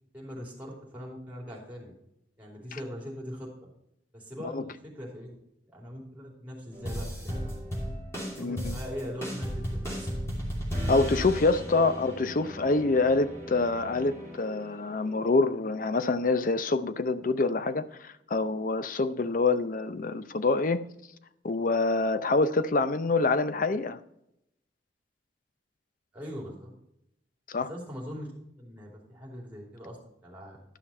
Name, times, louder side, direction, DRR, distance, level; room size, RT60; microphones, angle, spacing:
voice 1, 0.1-1.9 2.4-3.5 4.1-5.4 5.7-7.6 8.4-10.1 26.1-26.7 27.7-28.3 28.6-30.0 30.2-30.6, equal, 10° right, 3.0 m, -41 dB
sound 1, 6.7-15.5 15.8-16.4 16.7-17.2 17.6-17.7, equal, 15° left, 2.8 m, -36 dB
voice 2, 8.4-8.8 10.9-20.8 21.4-24.0 27.5-27.7, left 3 dB, 50° left, 0.6 m, -26 dB
11.5 x 5.8 x 4.3 m
head